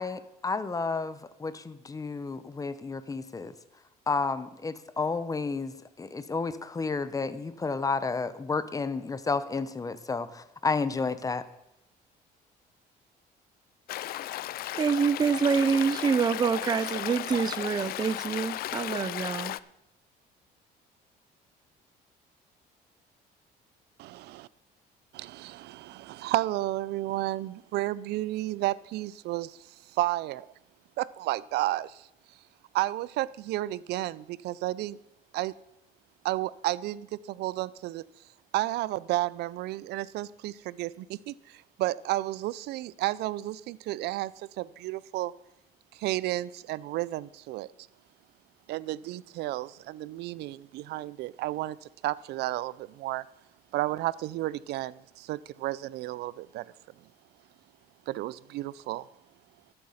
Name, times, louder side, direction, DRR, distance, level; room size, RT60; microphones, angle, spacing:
voice 1, 0.0-3.5 4.1-11.4, left 4 dB, 20° left, 0.8 m, -31 dB
Stream, 13.9-19.6, left 14 dB, 65° left, 0.4 m, -35 dB
voice 2, 14.7-19.6, right 6 dB, 25° right, 0.5 m, -26 dB
voice 3, 24.0-24.5 25.1-30.5 31.0-32.1 32.7-35.0 35.3-35.5 36.2-38.1 38.5-45.3 45.9-47.7 48.7-53.2 53.7-56.7 58.1-59.1, right 16 dB, 75° right, 0.4 m, -32 dB
13.5 x 7.8 x 5.7 m
cardioid pair, 110°, 17 cm